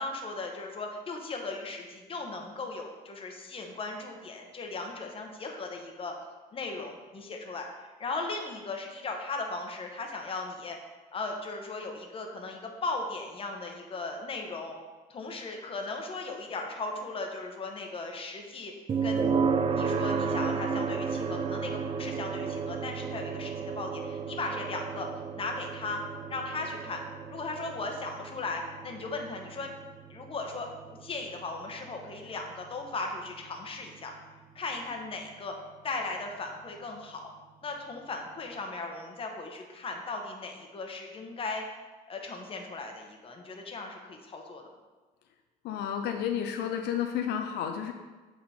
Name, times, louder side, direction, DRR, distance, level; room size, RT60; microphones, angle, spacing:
voice 1, 0.0-6.1 6.5-10.8 11.1-14.8 15.1-18.7 19.0-19.4 19.7-25.1 25.4-26.0 26.3-27.0 27.3-29.7 30.1-34.1 34.5-35.5 35.8-37.2 37.6-41.6 42.1-44.6, left 3 dB, 35° left, 2 dB, 1.0 m, -37 dB
sound 1, 18.9-33.8, right 5 dB, 35° right, 0.5 m, -33 dB
voice 2, 45.6-47.9, left 9 dB, 80° left, 5 dB, 0.5 m, -31 dB
7.6 x 3.8 x 4.3 m, 1.3 s
cardioid pair, 110°, 17 cm